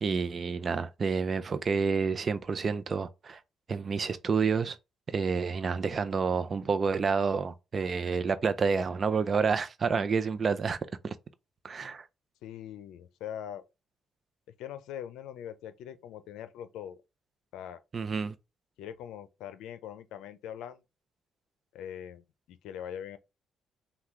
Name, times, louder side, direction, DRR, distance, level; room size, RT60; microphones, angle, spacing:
voice 1, 0.0-3.4 3.7-4.8 5.1-10.8 11.0-11.1 11.6-12.1 17.9-18.3, right 5 dB, 40° right, 0.6 m, -29 dB
voice 2, 12.4-13.6 14.6-17.0 17.5-17.8 18.8-20.8 21.7-23.2, left 10 dB, 90° left, 0.6 m, -42 dB
5.8 x 2.4 x 3.1 m
cardioid pair, 90°, 0 cm